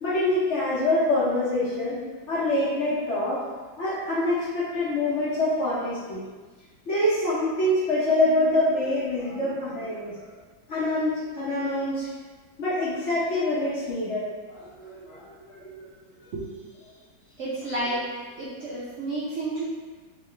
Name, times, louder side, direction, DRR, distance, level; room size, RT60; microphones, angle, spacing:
voice 1, 0.0-2.0 2.3-3.4 3.8-6.2 6.9-10.3 10.7-12.1 12.6-14.3 14.6-15.9, left 1 dB, 50° left, -10 dB, 0.9 m, -25 dB
voice 2, 17.4-18.1 18.4-19.6, right 2 dB, 90° right, -7 dB, 0.6 m, -30 dB
3.1 x 3.0 x 3.2 m, 1.4 s
omnidirectional pair, 2.1 m